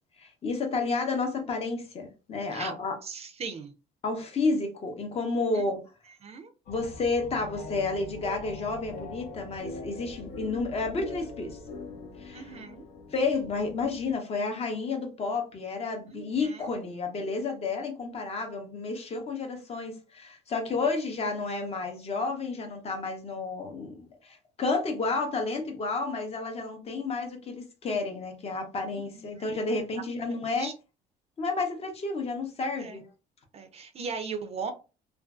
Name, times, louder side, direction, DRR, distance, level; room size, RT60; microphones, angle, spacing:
voice 1, 0.2-3.0 4.0-5.8 6.7-11.6 12.2-12.6 13.1-30.7 31.4-33.0, left 3 dB, 35° left, 0.6 m, -31 dB
voice 2, 3.0-3.7 5.5-5.7 6.2-6.5 12.3-12.8 16.1-16.6 28.9-29.6 30.6-30.7 32.8-33.0 33.5-34.7, right 5 dB, 40° right, 0.4 m, -38 dB
sound 1, 6.7-14.1, left 3 dB, 75° left, 0.8 m, -42 dB
2.5 x 2.3 x 2.3 m
cardioid pair, 110°, 17 cm